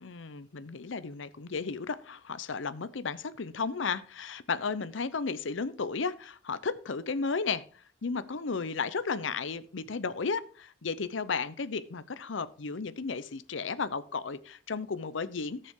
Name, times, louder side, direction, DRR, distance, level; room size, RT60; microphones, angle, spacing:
voice 1, 0.0-7.6 8.0-15.7, left 5 dB, 70° left, 14 dB, 0.7 m, -34 dB
18.5 x 6.8 x 3.7 m, 0.39 s
head